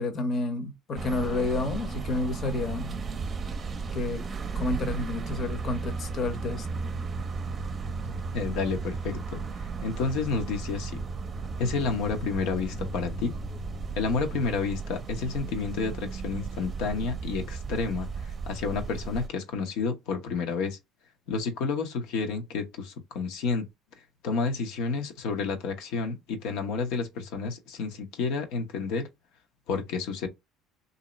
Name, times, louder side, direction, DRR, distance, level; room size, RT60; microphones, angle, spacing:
voice 1, 0.0-3.0 3.9-4.2 4.5-6.7, left 2 dB, 45° left, 0.9 m, -30 dB
sound 1, 1.0-19.3, right 4 dB, 35° right, 0.6 m, -35 dB
voice 2, 8.3-9.4 9.8-11.0 11.6-13.3 14.0-18.1 18.5-20.8 21.3-23.7 24.2-29.1 29.7-30.3, left 4 dB, 75° left, 0.9 m, -30 dB
2.9 x 2.7 x 4.0 m
supercardioid pair, 85°, 0 cm